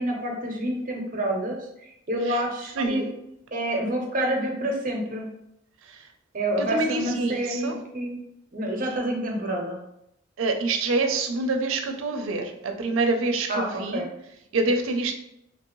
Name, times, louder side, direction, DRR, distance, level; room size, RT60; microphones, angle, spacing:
voice 1, 0.0-1.6 2.1-3.1 3.5-5.3 6.3-8.2 8.5-9.8 13.5-14.1, right 1 dB, 45° right, 1 dB, 0.7 m, -28 dB
voice 2, 2.8-3.1 6.6-7.7 10.4-14.0 14.5-15.1, right 3 dB, 90° right, 5 dB, 0.5 m, -26 dB
2.8 x 2.6 x 3.0 m, 0.80 s
head